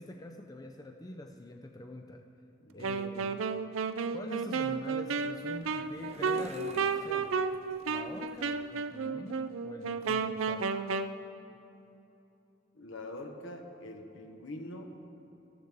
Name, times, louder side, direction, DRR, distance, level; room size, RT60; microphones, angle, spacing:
voice 1, 0.0-2.3 2.7-3.4 4.1-7.4 7.9-10.7, left 1 dB, 20° left, 4 dB, 0.5 m, -45 dB
voice 2, 2.6-3.0 12.7-15.0, left 1 dB, 70° left, 4 dB, 1.2 m, -44 dB
Wind instrument woodwind instrument, 2.8-11.2, right 5 dB, 90° right, 0.4 m, -33 dB
sound 1, 5.2-8.8, right 2 dB, 35° right, 0.7 m, -50 dB
14.0 x 12.5 x 3.5 m, 2.9 s
head